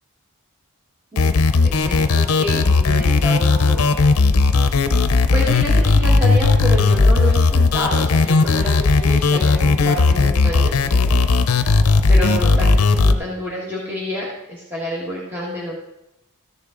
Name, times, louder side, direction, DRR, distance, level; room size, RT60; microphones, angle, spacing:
sound 1, 1.2-13.1, left 3 dB, 70° left, 0.6 m, -16 dB
voice 1, 1.6-3.8 5.3-11.2 12.1-15.8, equal, 10° right, -6 dB, 1.4 m, -28 dB
13.5 x 6.8 x 3.8 m, 0.90 s
head